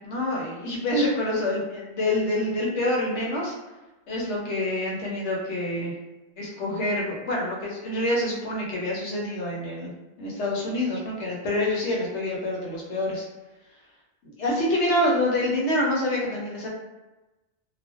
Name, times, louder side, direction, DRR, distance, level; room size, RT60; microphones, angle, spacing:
voice 1, 0.0-3.5 4.1-5.9 6.4-9.9 10.2-13.2 14.2-16.7, left 1 dB, 85° left, -3 dB, 1.0 m, -26 dB
2.4 x 2.1 x 2.4 m, 1.1 s
omnidirectional pair, 1.1 m